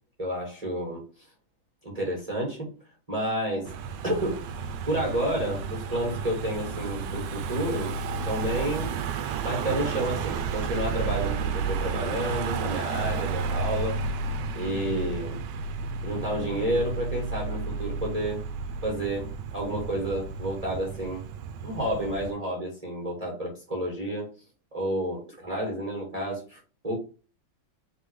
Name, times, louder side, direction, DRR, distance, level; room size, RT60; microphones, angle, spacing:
voice 1, 0.2-1.0 1.8-2.7 3.1-3.7 4.0-7.9 8.3-9.0 9.4-14.0 14.5-15.4 16.0-18.4 18.8-21.2 21.6-24.3 24.7-27.0, right 1 dB, 20° right, -3 dB, 1.7 m, -30 dB
Car passing by / Engine, 3.7-22.3, right 5 dB, 70° right, 1.2 m, -32 dB
4.2 x 3.7 x 3.2 m, 0.35 s
omnidirectional pair, 2.2 m